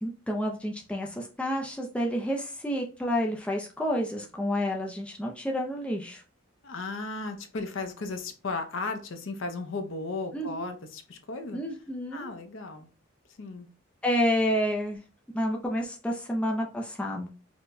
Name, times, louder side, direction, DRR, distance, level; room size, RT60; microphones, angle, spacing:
voice 1, 0.0-6.2 10.3-10.7 11.5-12.3 14.0-15.0 15.3-17.3, equal, 5° left, 0.3 m, -29 dB
voice 2, 6.6-11.6 12.1-12.9 13.4-13.7, left 3 dB, 65° left, 0.5 m, -35 dB
4.4 x 2.1 x 2.5 m
head